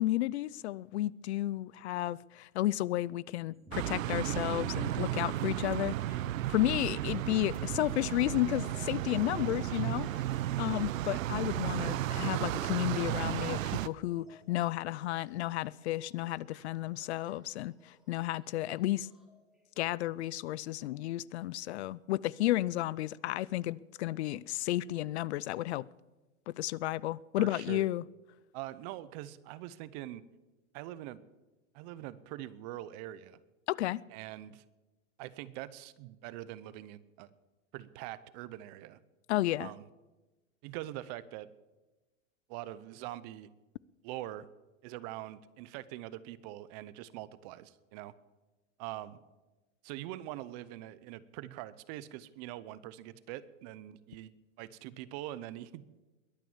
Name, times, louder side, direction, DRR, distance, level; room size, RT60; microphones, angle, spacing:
voice 1, 0.0-6.2 6.5-10.1 10.6-19.1 19.8-25.9 26.5-28.0 33.7-34.0 39.3-39.7, left 15 dB, 60° left, 0.5 m, -32 dB
sound 1, 3.7-13.9, right 13 dB, 85° right, 0.7 m, -34 dB
sound 2, 7.1-19.4 20.6-20.7 21.5-21.6 22.3-22.4, equal, ahead, 2.1 m, -55 dB
voice 2, 27.4-27.9 28.5-30.2 30.7-31.3 31.7-33.4 34.1-34.6 35.2-37.3 37.7-39.0 39.6-39.8 40.6-41.5 42.5-43.5 44.0-44.5 44.8-48.1 48.8-49.2 49.8-56.0, right 14 dB, 35° right, 0.7 m, -43 dB
21.5 x 9.1 x 7.2 m
supercardioid pair, 150°, 39 cm